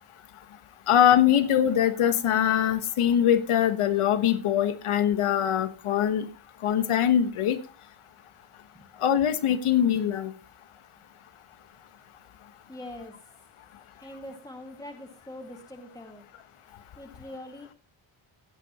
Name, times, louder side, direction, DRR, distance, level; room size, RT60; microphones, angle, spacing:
voice 1, 0.9-6.2 6.6-7.6 9.0-10.3, left 10 dB, 80° left, 11 dB, 1.3 m, -22 dB
voice 2, 12.7-13.1 14.0-16.2 17.0-17.7, left 1 dB, 5° left, 2 dB, 2.0 m, -43 dB
16.5 x 8.4 x 3.0 m, 0.34 s
wide cardioid pair, 130°, 50 cm